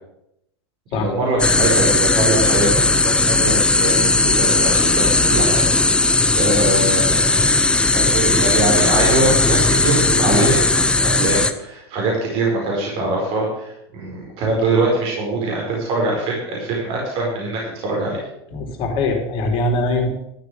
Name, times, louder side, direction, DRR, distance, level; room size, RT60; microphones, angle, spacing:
voice 1, 0.9-7.4 7.9-18.2, right 2 dB, 45° right, -2 dB, 4.9 m, -23 dB
sound 1, 1.4-11.5, left 3 dB, 5° left, 0.7 m, -17 dB
voice 2, 18.5-20.1, left 2 dB, 40° left, 2 dB, 3.6 m, -22 dB
12.5 x 6.9 x 8.0 m, 0.81 s
supercardioid pair, 130°, 14 cm